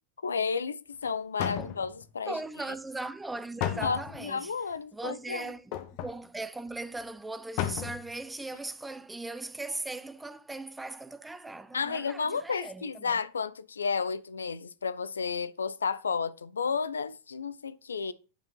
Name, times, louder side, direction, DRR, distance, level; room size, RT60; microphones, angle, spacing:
voice 1, 0.2-2.4 3.7-5.5 11.7-18.1, left 5 dB, 70° left, 0.6 m, -32 dB
sound 1, 1.0-1.1 1.4-2.1 3.6-4.3 5.7-6.2 6.7-6.8 7.0-7.1 7.6-8.1 8.5-8.6, left 11 dB, 45° left, 1.0 m, -34 dB
voice 2, 2.3-4.5 4.9-13.2, right 2 dB, 5° right, 0.6 m, -39 dB
10.0 x 5.2 x 5.3 m
figure-of-eight pair, 90°, 0 cm